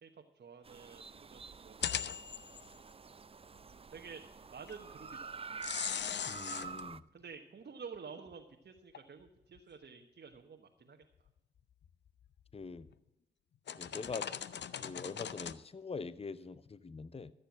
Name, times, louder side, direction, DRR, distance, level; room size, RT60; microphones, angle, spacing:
voice 1, 0.0-2.2 3.9-4.2 4.5-5.5 6.7-11.0, right 5 dB, 55° right, 3 dB, 1.2 m, -51 dB
sound 1, 0.6-7.0, right 5 dB, 30° right, 0.5 m, -48 dB
sound 2, 1.8-2.8 4.7-4.8 5.6-6.8 8.3-8.4 8.9-9.0 9.6-9.7 11.8-12.3 12.8-12.9 13.7-15.5, left 8 dB, 60° left, 0.6 m, -39 dB
voice 2, 6.3-7.0 12.5-12.9 13.8-14.3 14.8-17.3, left 4 dB, 30° left, 16 dB, 0.7 m, -43 dB
14.0 x 6.9 x 7.2 m, 0.95 s
supercardioid pair, 40°, 20 cm